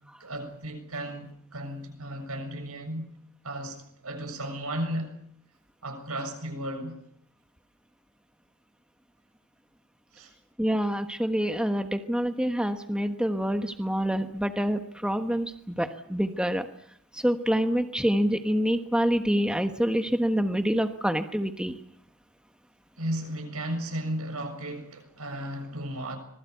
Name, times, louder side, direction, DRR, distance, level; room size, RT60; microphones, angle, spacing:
voice 1, 0.2-3.1 3.4-5.1 5.8-7.0 10.1-10.3 23.0-26.2, right 1 dB, 75° right, 7.1 m, -34 dB
voice 2, 10.6-15.5 15.8-16.7 17.1-21.7, equal, 5° right, 1.3 m, -26 dB
26.0 x 20.5 x 8.2 m
head